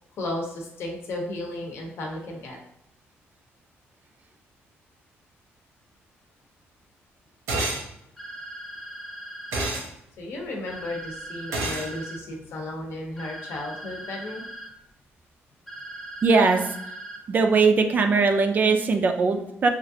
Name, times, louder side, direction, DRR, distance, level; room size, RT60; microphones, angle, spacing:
voice 1, 0.2-2.6 10.2-14.4, left 1 dB, 65° left, 0 dB, 0.7 m, -34 dB
sound 1, 7.5-7.9 9.5-9.9 11.5-11.9, right 2 dB, 85° right, 0.8 m, -27 dB
sound 2, 8.2-9.7 10.7-12.2 13.2-14.7 15.7-17.2, right 1 dB, 5° left, 0.6 m, -39 dB
voice 2, 16.2-16.6 17.3-19.7, right 4 dB, 40° right, 5 dB, 0.3 m, -20 dB
3.1 x 2.4 x 2.6 m, 0.80 s
cardioid pair, 135°, 5 cm